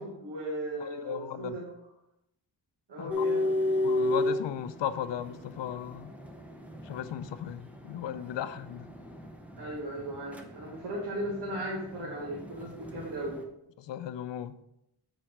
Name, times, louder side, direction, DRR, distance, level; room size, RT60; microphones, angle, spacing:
voice 1, 0.0-1.7 2.9-3.5 9.6-13.4, right 1 dB, 70° right, -3 dB, 1.7 m, -37 dB
voice 2, 0.8-1.6 3.0-3.2 3.8-6.1 6.8-8.9 13.8-14.5, left 10 dB, 90° left, 12 dB, 0.6 m, -36 dB
sound 1, 3.1-13.4, left 2 dB, 5° right, 0.7 m, -34 dB
7.9 x 5.1 x 4.3 m, 0.82 s
wide cardioid pair, 140°, 42 cm